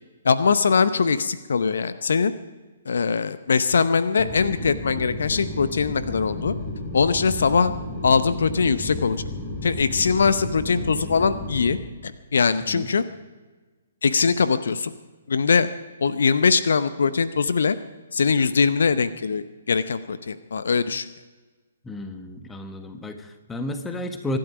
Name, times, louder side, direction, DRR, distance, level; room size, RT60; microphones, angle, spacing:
voice 1, 0.2-2.3 2.9-6.5 6.9-7.7 8.0-9.2 9.6-11.8 12.0-13.0 14.0-14.9 15.3-15.7 16.0-17.8 18.1-21.1, left 5 dB, 60° left, 13 dB, 0.7 m, -21 dB
sound 1, 4.2-11.8, left 1 dB, 25° left, 4.9 m, -33 dB
voice 2, 21.8-24.4, left 1 dB, 10° left, 7 dB, 1.4 m, -32 dB
24.5 x 12.0 x 5.0 m, 1.3 s
figure-of-eight pair, 125°, 0 cm